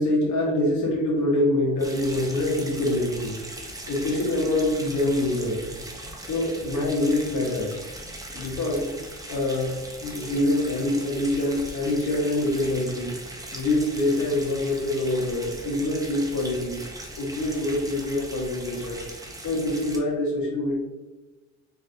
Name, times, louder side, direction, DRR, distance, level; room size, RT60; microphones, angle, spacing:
voice 1, 0.0-3.3 3.9-5.6 6.2-7.8 8.3-8.9 9.3-13.1 13.5-16.8 17.2-19.0 19.4-20.8, left 1 dB, 70° left, -4 dB, 1.4 m, -25 dB
sound 1, 1.8-20.0, right 1 dB, 10° right, 0.8 m, -39 dB
4.0 x 3.1 x 2.6 m, 1.2 s
cardioid pair, 90°, 30 cm